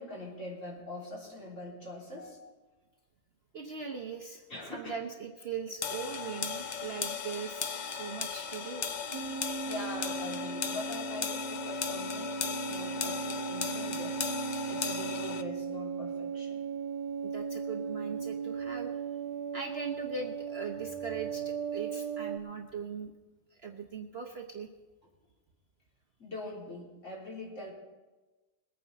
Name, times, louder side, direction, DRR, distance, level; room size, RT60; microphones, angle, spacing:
voice 1, 0.0-2.6 4.5-5.0 9.6-14.2 14.7-16.6 26.2-27.7, left 2 dB, 50° left, -5 dB, 4.0 m, -43 dB
voice 2, 3.5-4.4 4.7-8.9 17.2-19.0 19.5-23.1 23.5-24.7, right 5 dB, 45° right, 2 dB, 1.0 m, -40 dB
sound 1, 5.8-15.4, left 6 dB, 70° left, 0.4 m, -36 dB
sound 2, 9.1-22.4, right 6 dB, 85° right, 1.2 m, -37 dB
21.5 x 9.2 x 4.1 m, 1.2 s
omnidirectional pair, 1.7 m